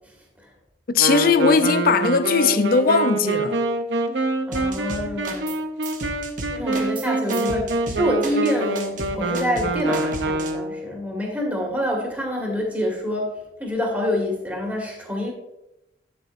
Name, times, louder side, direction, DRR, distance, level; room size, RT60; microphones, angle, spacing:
voice 1, 0.9-3.6, left 5 dB, 55° left, 0.5 m, -19 dB
Wind instrument woodwind instrument, 1.0-10.9, right 2 dB, 80° right, 0.8 m, -26 dB
voice 2, 4.5-5.6 6.5-13.3 13.6-15.3, left 1 dB, 10° right, 2.0 m, -26 dB
sound 1, 4.5-5.6 5.8-10.5, right 3 dB, 45° right, 1.0 m, -34 dB
9.6 x 7.6 x 2.6 m
head